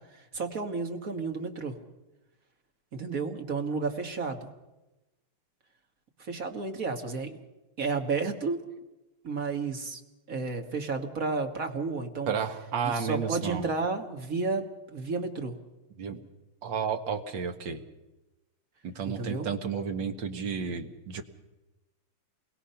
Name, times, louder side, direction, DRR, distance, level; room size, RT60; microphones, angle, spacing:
voice 1, 0.1-1.8 2.9-4.5 6.2-7.4 7.8-8.6 9.2-10.0 10.3-12.3 12.8-15.6 19.1-19.5, right 4 dB, 40° right, 5 dB, 1.8 m, -32 dB
voice 2, 12.3-13.6 16.0-16.2 16.6-17.8 18.8-21.2, right 6 dB, 60° right, 6 dB, 2.0 m, -32 dB
27.5 x 21.5 x 5.7 m, 1.0 s
omnidirectional pair, 2.4 m